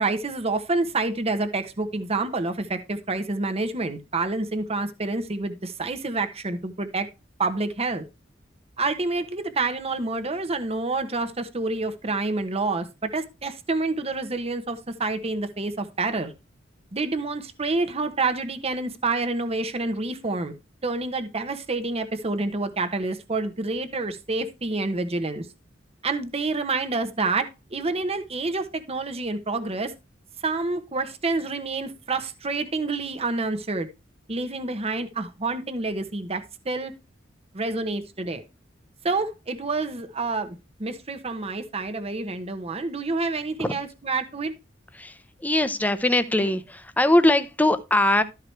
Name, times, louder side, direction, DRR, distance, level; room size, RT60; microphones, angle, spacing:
voice 1, 0.0-7.1 7.4-8.0 8.8-16.3 16.9-20.5 20.8-25.5 26.0-29.9 30.4-33.9 34.3-36.9 37.5-38.4 39.0-44.5, right 3 dB, 35° right, 1.0 m, -28 dB
voice 2, 44.9-48.2, left 1 dB, 10° left, 0.7 m, -21 dB
13.0 x 4.8 x 4.6 m
head